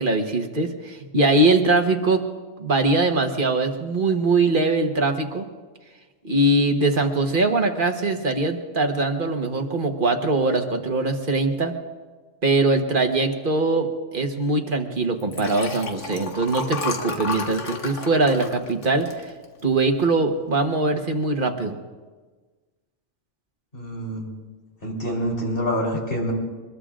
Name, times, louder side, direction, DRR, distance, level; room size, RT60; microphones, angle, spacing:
voice 1, 0.0-2.2 2.6-5.4 6.2-11.7 12.4-19.3 19.6-21.7, right 2 dB, 45° right, 4 dB, 1.4 m, -22 dB
Liquid, 15.2-19.8 20.3-20.6 20.9-21.0, left 4 dB, 70° left, 1.6 m, -32 dB
voice 2, 23.7-24.3 24.8-26.3, equal, 45° left, -1 dB, 3.7 m, -26 dB
25.0 x 21.0 x 2.5 m, 1.3 s
omnidirectional pair, 1.3 m